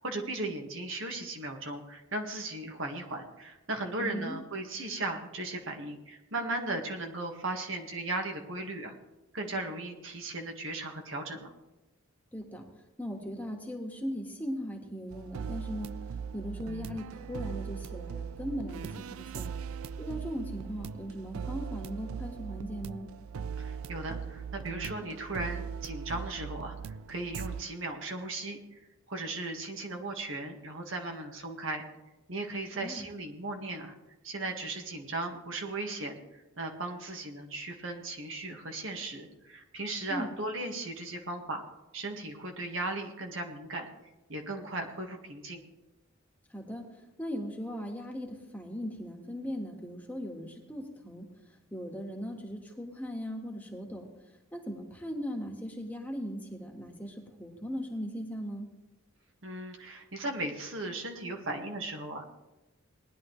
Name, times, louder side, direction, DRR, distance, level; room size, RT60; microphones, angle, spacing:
voice 1, 0.0-8.9 9.3-11.5 23.6-31.8 32.3-33.9 34.2-41.6 41.9-43.9 44.3-45.6 59.4-62.2, right 2 dB, 65° right, 3 dB, 1.7 m, -37 dB
voice 2, 4.0-4.4 12.3-12.6 13.0-15.9 16.3-19.5 20.0-23.1 32.7-33.0 40.1-40.3 46.5-46.8 47.2-51.3 51.7-54.1 54.5-57.1 57.4-58.7, equal, 10° left, 0 dB, 1.7 m, -38 dB
sound 1, 15.1-27.6, right 6 dB, 80° right, 0.4 m, -39 dB
19.5 x 11.0 x 3.2 m, 1.0 s
head